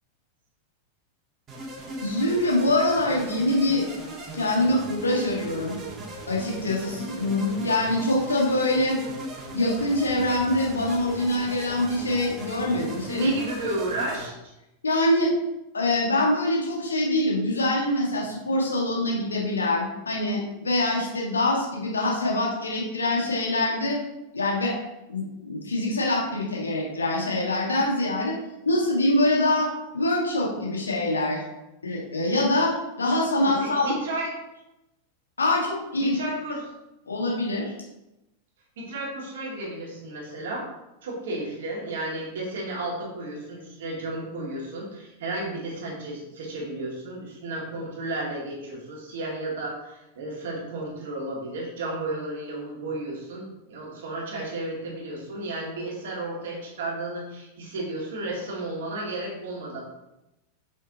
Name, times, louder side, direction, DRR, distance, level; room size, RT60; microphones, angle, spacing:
sound 1, 1.5-14.3, right 2 dB, 30° right, 1.9 m, -38 dB
voice 1, 2.0-3.8 4.3-5.7 6.3-9.0 9.5-13.4 14.8-15.3 15.7-24.0 24.3-24.7 25.1-28.3 28.6-31.4 31.8-32.7 33.0-33.9 35.4-36.2 37.1-37.7, left 1 dB, 75° left, -3 dB, 1.8 m, -24 dB
voice 2, 13.0-14.3 33.4-34.4 36.0-36.7 38.8-40.7 41.0-59.8, right 2 dB, 60° right, -3 dB, 2.3 m, -33 dB
7.1 x 5.6 x 3.0 m, 0.93 s
figure-of-eight pair, 90°, 0 cm